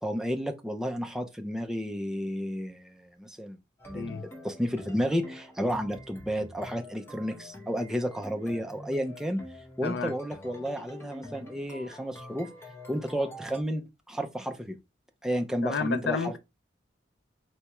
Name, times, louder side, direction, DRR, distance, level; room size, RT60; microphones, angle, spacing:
voice 1, 0.0-3.6 3.9-9.4 9.8-12.5 12.9-14.8 15.2-16.3, equal, 5° right, 0.4 m, -32 dB
sound 1, 3.8-13.6, left 1 dB, 15° left, 1.0 m, -46 dB
voice 2, 3.9-4.2 9.8-10.1 15.6-16.4, left 5 dB, 65° left, 0.4 m, -31 dB
4.3 x 3.4 x 2.9 m
head